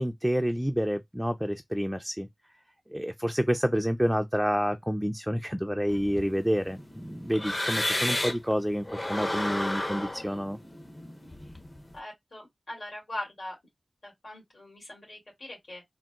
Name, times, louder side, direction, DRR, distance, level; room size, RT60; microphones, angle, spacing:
voice 1, 0.0-2.3 2.9-10.6, equal, 5° right, 0.3 m, -28 dB
sound 1, 5.9-8.5 8.9-11.9, left 1 dB, 35° left, 0.6 m, -32 dB
voice 2, 11.9-13.6 14.0-15.8, left 1 dB, 70° left, 2.2 m, -41 dB
3.8 x 2.0 x 2.3 m
cardioid pair, 50°, 0 cm